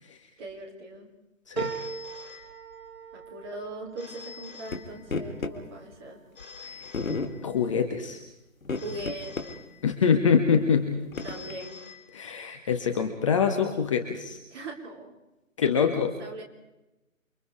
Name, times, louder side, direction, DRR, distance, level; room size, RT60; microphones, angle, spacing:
voice 1, 0.4-1.1 3.1-6.2 8.8-9.6 11.2-11.8 14.5-15.1 15.6-16.4, right 2 dB, 20° right, -1 dB, 3.9 m, -40 dB
Telephone, 1.6-3.1 4.0-5.5 6.4-7.9 8.7-10.2 11.1-12.6, left 6 dB, 40° left, 4.1 m, -47 dB
sound 1, 1.6-6.3 6.8-7.5 7.9-8.0, right 6 dB, 50° right, 3.2 m, -40 dB
sound 2, 4.7-4.8 5.1-5.6 6.4-6.5 6.9-7.4 8.6-9.5 9.9-10.0 10.6-11.6, left 4 dB, 70° left, 3.2 m, -32 dB
voice 2, 6.6-6.9 7.4-8.2 9.8-10.9 12.1-14.4 15.6-16.1, left 6 dB, 20° left, 5 dB, 1.3 m, -25 dB
29.5 x 24.5 x 4.9 m, 0.96 s
figure-of-eight pair, 155°, 42 cm